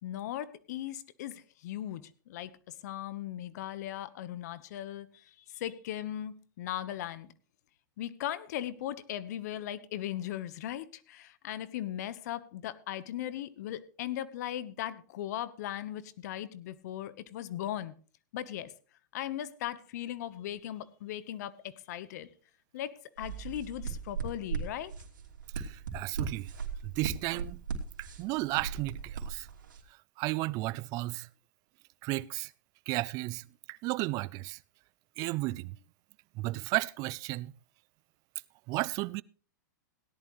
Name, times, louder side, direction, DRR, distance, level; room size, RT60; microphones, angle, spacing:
voice 1, 0.0-2.5 2.8-5.1 5.5-7.3 8.0-17.9 18.3-18.7 19.1-22.3 22.7-24.9, left 12 dB, 60° left, 1.2 m, -38 dB
sound 1, 23.2-29.8, right 5 dB, 90° right, 2.9 m, -38 dB
voice 2, 25.6-26.5 26.8-27.6 28.0-29.5 30.2-31.3 32.0-32.5 32.9-34.6 35.2-35.8 36.4-37.5 38.7-39.2, right 20 dB, 35° right, 0.5 m, -33 dB
17.5 x 11.0 x 3.2 m
hypercardioid pair, 130°, 10 cm